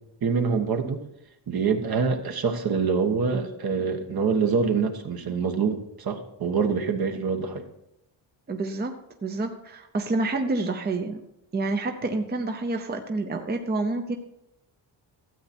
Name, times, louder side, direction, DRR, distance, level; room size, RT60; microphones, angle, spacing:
voice 1, 0.2-1.0 1.5-7.6, right 5 dB, 50° right, 5 dB, 1.4 m, -25 dB
voice 2, 8.5-8.9 9.2-11.2 11.5-14.2, right 2 dB, 20° right, 5 dB, 0.7 m, -28 dB
13.0 x 8.1 x 4.4 m, 0.84 s
cardioid pair, 125°, 46 cm